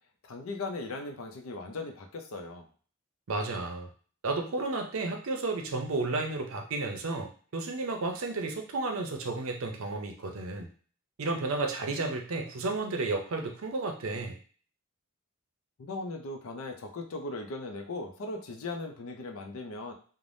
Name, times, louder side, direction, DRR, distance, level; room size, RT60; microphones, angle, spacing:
voice 1, 0.2-2.7 15.8-19.9, left 2 dB, 75° left, 4 dB, 0.5 m, -38 dB
voice 2, 3.3-3.9 4.2-10.7 11.2-14.4, right 3 dB, 70° right, 4 dB, 0.6 m, -32 dB
3.3 x 2.1 x 2.6 m, 0.43 s
head